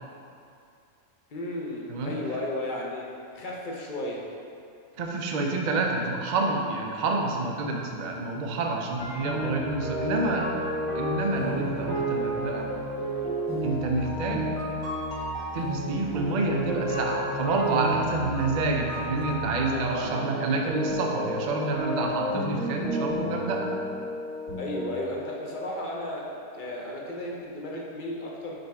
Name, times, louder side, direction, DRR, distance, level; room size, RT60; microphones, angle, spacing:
voice 1, 1.3-3.1 3.3-4.2 19.7-20.6 24.6-26.3 26.5-28.5, left 1 dB, 45° left, -2 dB, 0.6 m, -34 dB
voice 2, 5.0-10.5 10.9-12.7 13.6-14.5 15.5-23.7, right 3 dB, 70° right, 1 dB, 0.4 m, -28 dB
sound 1, 9.0-24.9, equal, 65° left, 1.8 m, -31 dB
5.2 x 4.1 x 4.6 m, 2.5 s
omnidirectional pair, 1.6 m